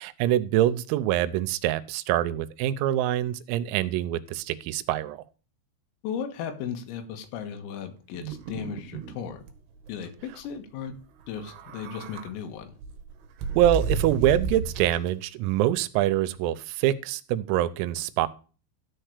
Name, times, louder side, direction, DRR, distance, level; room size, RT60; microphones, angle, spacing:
voice 1, 0.0-5.2 13.6-18.3, right 13 dB, 90° right, 14 dB, 3.4 m, -25 dB
voice 2, 6.0-9.4 9.9-11.0 11.3-12.8, left 8 dB, 85° left, 6 dB, 4.1 m, -36 dB
sound 1, 8.1-9.1 9.5-9.6 9.9-10.1 11.3-12.3 12.8-15.1, right 3 dB, 70° right, 3.0 m, -32 dB
13.0 x 4.5 x 6.6 m, 0.36 s
omnidirectional pair, 6.0 m